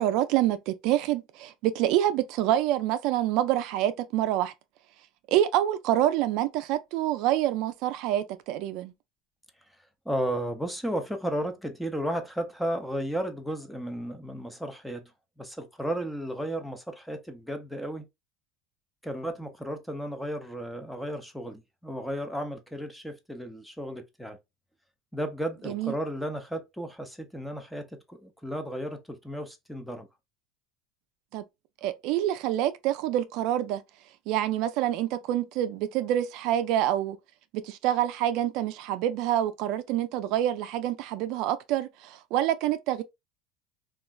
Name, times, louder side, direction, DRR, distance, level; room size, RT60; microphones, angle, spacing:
voice 1, 0.0-4.5 5.3-8.9 25.7-25.9 31.3-31.4 31.8-33.8 34.3-37.2 37.5-43.0, right 12 dB, 60° right, 0.3 m, -27 dB
voice 2, 10.1-15.1 15.4-18.1 19.0-24.4 25.1-30.1, equal, ahead, 0.5 m, -34 dB
3.1 x 2.3 x 2.3 m
supercardioid pair, 140°, 0 cm